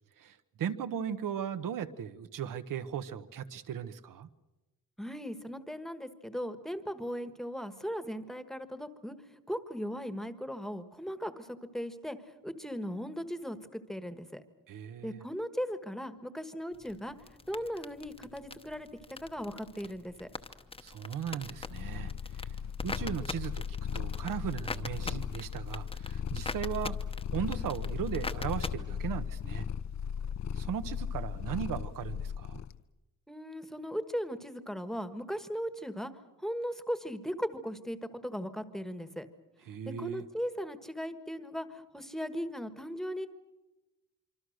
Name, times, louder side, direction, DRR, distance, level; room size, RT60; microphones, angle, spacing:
voice 1, 0.2-4.3 14.7-15.2 20.8-22.5 22.8-23.6 23.9-27.0 27.3-29.7 30.5-32.6 39.7-40.2, right 8 dB, 70° right, 11 dB, 1.3 m, -37 dB
voice 2, 5.0-9.1 9.5-11.5 11.7-14.4 15.0-17.1 17.5-18.9 19.2-20.3 33.3-36.1 36.4-39.3 40.0-43.3, equal, ahead, 10 dB, 1.3 m, -38 dB
sound 1, 16.7-28.7, left 3 dB, 15° left, 0.9 m, -44 dB
Purr, 21.5-32.8, left 8 dB, 55° left, 0.8 m, -37 dB
26.0 x 25.0 x 6.5 m, 1.0 s
wide cardioid pair, 175°, 33 cm